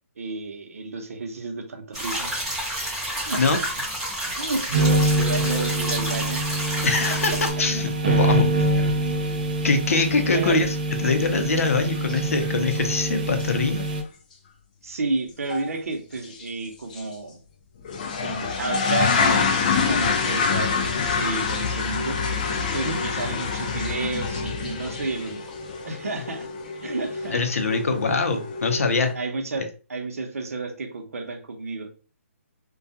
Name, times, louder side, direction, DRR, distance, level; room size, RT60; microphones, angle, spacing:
voice 1, 0.2-2.3 3.1-3.6 4.4-6.8 7.0-7.1 8.1-8.2 8.6-8.7 9.1-9.2 10.3-10.6 14.8-17.4 18.2-22.2 22.7-25.4 25.9-26.5 26.8-27.4 29.1-31.9, right 3 dB, 75° right, 4 dB, 0.7 m, -31 dB
sound 1, 1.9-7.5, right 1 dB, 5° right, 1.1 m, -29 dB
sound 2, 4.7-14.0, right 1 dB, 35° right, 0.4 m, -25 dB
voice 2, 6.8-8.5 9.6-10.7 11.0-13.9 22.8-23.0 27.3-29.1, left 3 dB, 70° left, 6 dB, 0.6 m, -23 dB
sound 3, 11.6-11.7 12.0-12.5 12.8-12.9 13.4-13.5 13.8-13.9 15.5-15.7 16.2-16.5 16.9-17.0 17.8-29.1, left 5 dB, 30° left, 0.4 m, -26 dB
2.3 x 2.2 x 2.7 m, 0.36 s
hypercardioid pair, 170°, 8 cm